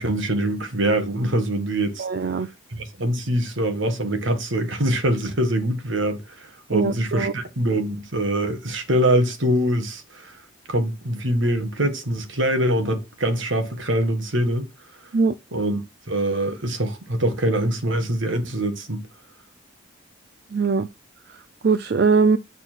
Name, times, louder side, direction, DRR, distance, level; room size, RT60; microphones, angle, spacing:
voice 1, 0.0-2.1 2.7-10.3 10.7-14.7 15.5-15.8 16.1-19.1, right 1 dB, 70° right, 1.6 m, -24 dB
voice 2, 2.0-2.5 6.7-7.3 15.1-15.3 20.5-20.9 21.6-22.4, right 4 dB, 55° right, 0.4 m, -20 dB
8.8 x 4.2 x 4.5 m
head